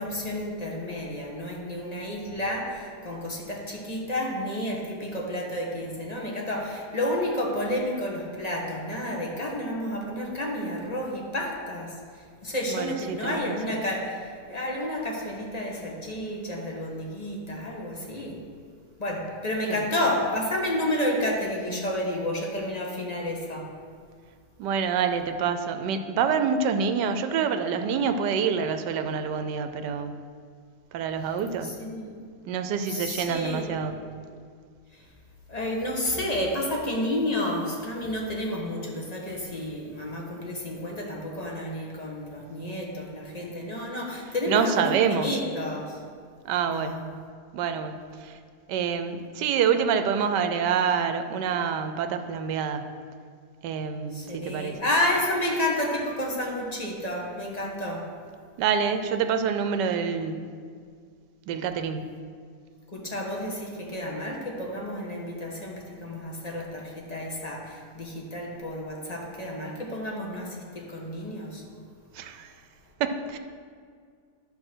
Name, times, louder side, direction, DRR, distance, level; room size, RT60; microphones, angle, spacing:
voice 1, 0.0-18.4 19.0-23.7 31.6-32.2 32.9-34.0 34.9-35.0 35.5-46.0 46.7-47.0 54.1-58.1 62.9-71.6, left 1 dB, 25° left, -2 dB, 1.1 m, -31 dB
voice 2, 12.7-13.8 19.7-19.8 24.6-30.1 30.9-31.7 32.5-34.0 44.5-45.4 46.4-47.0 47.5-48.4 48.7-52.9 53.6-54.8 58.6-60.5 61.5-62.2 72.1-72.5 73.0-73.4, right 6 dB, 80° right, 8 dB, 1.2 m, -27 dB
11.0 x 3.8 x 6.1 m, 2.1 s
omnidirectional pair, 1.8 m